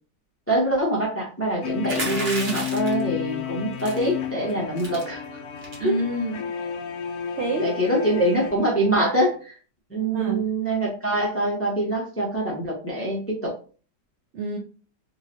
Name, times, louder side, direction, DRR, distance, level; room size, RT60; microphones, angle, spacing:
voice 1, 0.5-5.4 5.8-5.9 7.6-9.6 9.9-13.5, right 1 dB, 15° left, -3 dB, 0.6 m, -24 dB
sound 1, 1.6-9.4, left 8 dB, 70° left, 1.0 m, -32 dB
sound 2, 1.8-3.0 3.8-4.1 4.5-4.6 4.8-5.0 5.6-5.9, right 2 dB, 40° right, 1.2 m, -31 dB
voice 2, 5.8-6.5 7.4-8.0 10.1-10.5 14.3-14.6, right 1 dB, 75° right, 1 dB, 0.6 m, -28 dB
3.7 x 3.0 x 2.8 m, 0.39 s
omnidirectional pair, 1.9 m